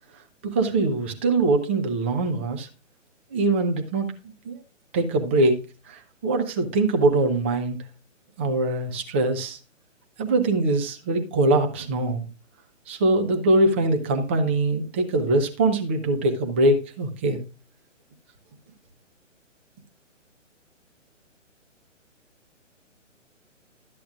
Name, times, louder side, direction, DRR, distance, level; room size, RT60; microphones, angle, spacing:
voice 1, 0.4-2.7 3.3-4.1 4.4-4.6 4.9-5.6 5.9-7.8 8.4-9.6 10.2-12.3 12.9-17.4, right 2 dB, 10° right, 5 dB, 0.5 m, -22 dB
12.5 x 8.5 x 2.4 m, 0.31 s
figure-of-eight pair, 130°, 38 cm